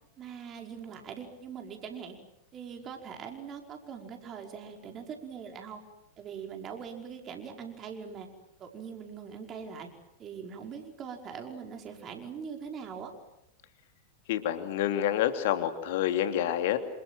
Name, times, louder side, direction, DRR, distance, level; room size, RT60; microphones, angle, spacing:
voice 1, 0.2-2.2 2.5-5.8 6.2-8.3 8.6-9.9 10.2-13.1, right 6 dB, 30° right, 3 dB, 5.1 m, -42 dB
voice 2, 14.3-16.8, left 11 dB, 50° left, 8 dB, 2.8 m, -28 dB
28.0 x 27.0 x 7.6 m, 0.81 s
figure-of-eight pair, 90°, 0 cm